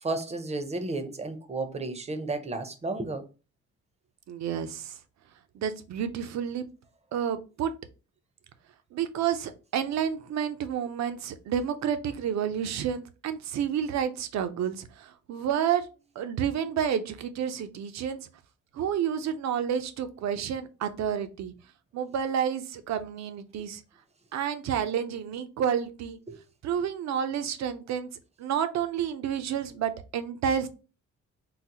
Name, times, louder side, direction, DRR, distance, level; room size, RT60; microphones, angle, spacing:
voice 1, 0.0-3.2 26.3-26.4, right 2 dB, 20° right, 0.6 m, -32 dB
voice 2, 4.3-4.9 5.5-6.6 7.1-7.7 8.9-15.8 16.2-18.2 18.7-21.5 21.9-23.8 24.3-26.2 26.6-28.1 28.4-30.7, right 8 dB, 65° right, 0.6 m, -30 dB
3.9 x 2.0 x 2.8 m
cardioid pair, 90°, 30 cm